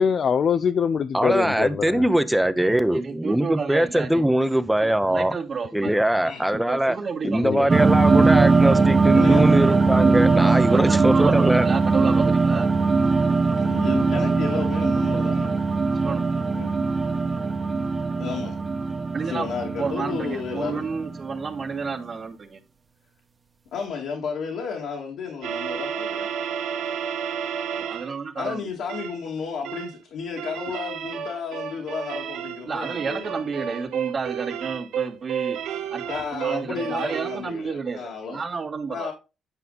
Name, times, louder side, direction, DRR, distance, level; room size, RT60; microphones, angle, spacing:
voice 1, 0.0-2.0 7.4-7.7, left 6 dB, 55° left, 0.4 m, -23 dB
voice 2, 1.1-5.4 5.7-7.0 7.2-11.7, right 1 dB, 5° right, 0.8 m, -22 dB
voice 3, 2.9-4.2 4.8-5.9 6.5-7.8 10.6-12.7 16.0-16.2 19.1-19.5 19.8-22.6 27.8-28.6 32.7-35.6 35.9-36.0 36.3-39.1, right 5 dB, 50° right, 1.8 m, -31 dB
sound 1, 7.7-21.7, right 4 dB, 30° right, 1.2 m, -20 dB
voice 4, 9.1-9.5 13.6-15.6 16.5-16.7 18.1-18.6 19.2-20.8 23.7-26.3 28.4-33.7 36.1-38.4 38.9-39.1, left 6 dB, 80° left, 2.2 m, -32 dB
sound 2, 25.4-28.1 28.9-29.2 29.6-30.0 30.4-37.4, right 8 dB, 85° right, 1.0 m, -31 dB
9.8 x 5.2 x 4.0 m
cardioid pair, 90°, 0 cm